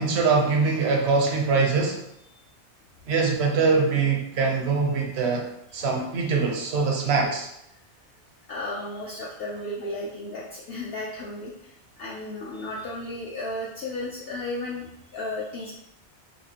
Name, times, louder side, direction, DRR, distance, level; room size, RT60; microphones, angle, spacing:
voice 1, 0.0-2.0 3.1-5.4 5.7-7.5, right 4 dB, 70° right, 1 dB, 1.0 m, -23 dB
voice 2, 8.5-15.7, left 2 dB, 65° left, -5 dB, 0.8 m, -34 dB
4.1 x 2.7 x 2.8 m, 0.79 s
omnidirectional pair, 1.1 m